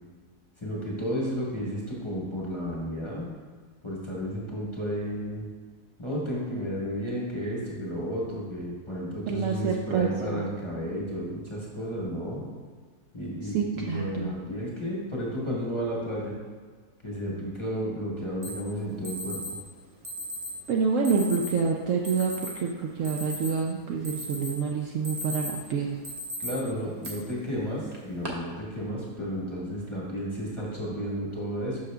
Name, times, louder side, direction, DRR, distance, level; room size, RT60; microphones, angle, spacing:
voice 1, 0.6-3.3 3.8-5.5 6.0-12.4 13.1-16.3 17.0-19.6 26.4-31.8, equal, 20° left, -5 dB, 1.2 m, -32 dB
voice 2, 9.3-10.5 13.5-14.3 20.7-25.9, right 5 dB, 65° right, 0 dB, 0.8 m, -27 dB
Alarm, 18.4-18.5 19.0-19.5 20.0-20.5 21.0-21.5 22.0-22.5 22.9-23.7 24.0-24.6 24.9-25.6 26.0-26.5 27.0-27.1 27.9-28.3, left 1 dB, 30° right, 0.9 m, -36 dB
6.3 x 5.6 x 3.4 m, 1.5 s
omnidirectional pair, 1.7 m